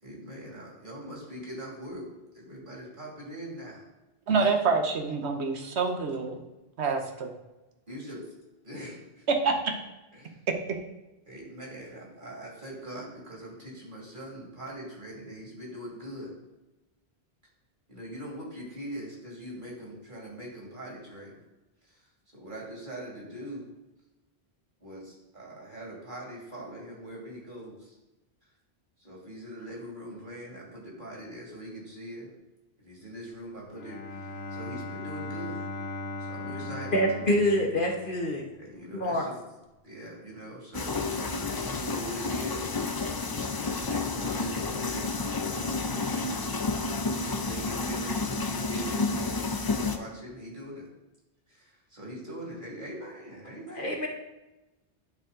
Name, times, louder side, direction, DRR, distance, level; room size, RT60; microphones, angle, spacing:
voice 1, 0.0-2.1 2.3-3.8 4.4-4.5 5.6-5.7 7.9-8.2 8.6-9.2 10.2-10.4 11.3-16.3 17.9-21.4 22.3-23.7 24.8-27.9 29.0-32.3 32.8-34.0 34.5-35.6 36.2-37.4 38.6-39.4 39.8-42.7 43.5-46.5 47.2-49.1 49.7-50.9 51.5-54.0, right 1 dB, 50° right, -3 dB, 2.7 m, -42 dB
voice 2, 4.3-6.4 6.8-7.3 9.4-9.5, right 4 dB, 90° right, 4 dB, 1.2 m, -26 dB
Bowed string instrument, 33.6-38.5, left 2 dB, 70° left, 1.0 m, -38 dB
voice 3, 36.9-38.4 38.9-39.3 53.8-54.1, equal, 50° left, 1 dB, 1.4 m, -26 dB
sound 1, 40.7-50.0, left 3 dB, 35° left, 0.4 m, -30 dB
11.0 x 4.5 x 3.8 m, 1.0 s
omnidirectional pair, 1.1 m